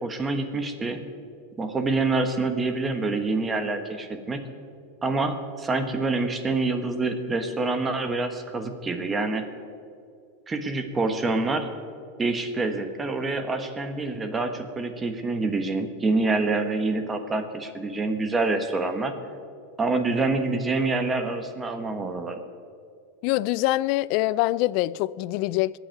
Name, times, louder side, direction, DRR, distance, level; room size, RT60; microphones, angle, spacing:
voice 1, 0.0-1.0 1.6-4.4 5.0-9.4 10.5-11.7 12.2-19.1 19.8-22.4, right 3 dB, 15° right, 1.3 m, -26 dB
voice 2, 23.2-25.8, left 17 dB, 55° left, 0.3 m, -24 dB
23.0 x 8.1 x 4.7 m
supercardioid pair, 130°, 0 cm